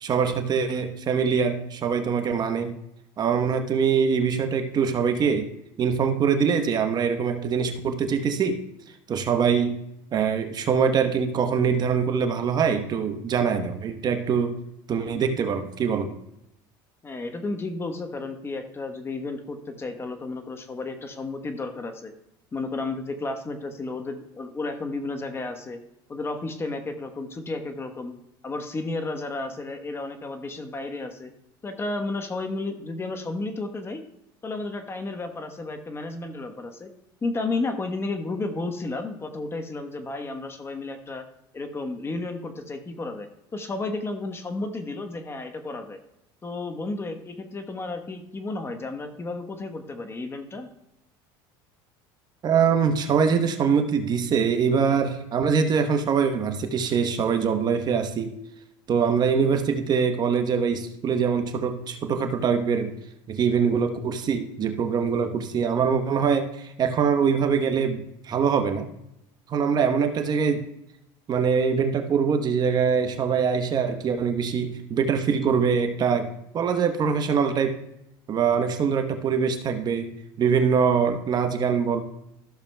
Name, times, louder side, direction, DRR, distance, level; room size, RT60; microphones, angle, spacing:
voice 1, 0.0-2.8 3.2-5.5 5.8-8.6 9.1-9.8 10.1-14.6 14.9-16.1 52.4-58.4 58.9-62.9 63.3-68.9 69.5-70.7 71.3-76.3 76.5-77.8 78.3-80.1 80.4-82.0, right 6 dB, 35° right, 7 dB, 1.0 m, -23 dB
voice 2, 17.0-22.1 22.5-25.8 26.1-28.1 28.4-31.3 31.6-34.0 34.4-36.9 37.2-41.2 41.5-46.0 46.4-50.7, left 3 dB, 20° left, 7 dB, 1.1 m, -32 dB
14.0 x 6.9 x 2.3 m, 0.82 s
supercardioid pair, 105°, 11 cm